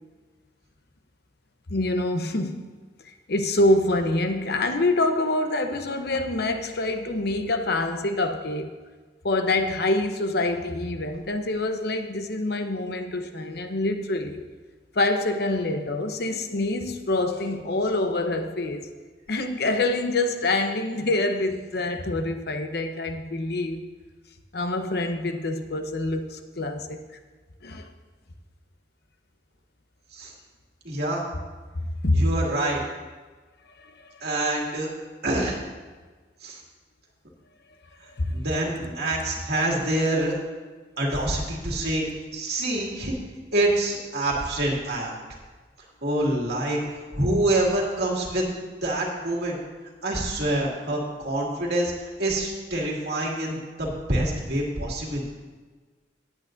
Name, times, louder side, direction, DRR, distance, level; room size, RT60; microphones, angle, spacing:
voice 1, 1.7-2.7 3.0-8.7 9.2-14.4 14.9-18.9 19.3-23.9 24.5-27.0 27.6-27.9 32.0-32.3 33.8-34.1 38.2-38.4, left 2 dB, 65° left, 6 dB, 0.8 m, -26 dB
voice 2, 30.8-31.2 32.1-32.8 34.2-34.9 35.2-35.6 36.4-36.6 38.3-40.3 41.0-42.0 42.3-43.1 43.5-45.1 46.0-46.8 47.1-48.5 48.8-49.6 50.0-51.9 52.2-55.3, right 1 dB, 65° right, -2 dB, 2.3 m, -26 dB
18.0 x 8.5 x 2.6 m, 1.4 s
head